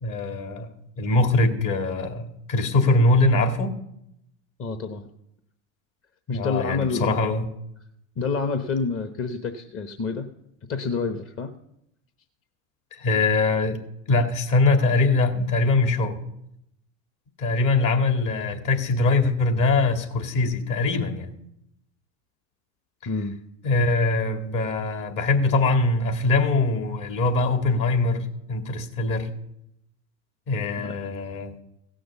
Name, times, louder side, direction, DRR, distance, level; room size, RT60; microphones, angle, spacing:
voice 1, 0.0-3.7 6.3-7.5 12.9-13.8 14.1-16.2 17.4-21.3 23.6-29.3 30.5-31.5, left 2 dB, 55° left, 6 dB, 2.3 m, -22 dB
voice 2, 4.6-5.0 6.3-7.2 8.2-10.3 10.7-11.5 23.1-23.3 30.8-31.0, left 4 dB, 35° left, 7 dB, 1.0 m, -28 dB
16.0 x 6.3 x 7.1 m, 0.80 s
hypercardioid pair, 90°, 37 cm